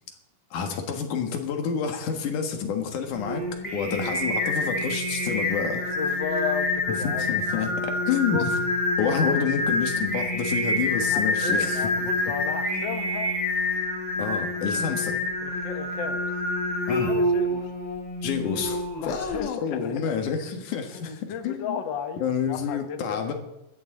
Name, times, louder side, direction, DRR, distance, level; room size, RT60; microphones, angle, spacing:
voice 1, 0.5-3.4 3.7-6.0 6.9-8.6 9.0-12.1 14.2-15.2 16.9-17.1 18.2-21.8 22.2-23.3, left 6 dB, 65° left, 5 dB, 3.0 m, -28 dB
Singing, 3.1-19.4, left 1 dB, 10° left, 3.7 m, -27 dB
voice 2, 5.9-7.6 8.3-8.4 9.3-9.5 11.0-13.3 15.4-16.3 17.1-17.7 19.0-20.2 20.9-23.2, left 7 dB, 90° left, 7 dB, 1.0 m, -34 dB
20.5 x 14.0 x 3.9 m, 0.89 s
omnidirectional pair, 4.0 m